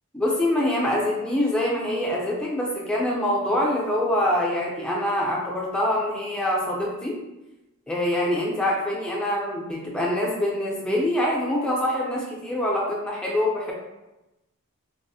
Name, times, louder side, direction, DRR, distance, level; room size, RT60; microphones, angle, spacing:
voice 1, 0.1-7.2 7.9-13.7, left 1 dB, 5° left, -4 dB, 0.5 m, -25 dB
3.9 x 2.0 x 2.7 m, 1.0 s
head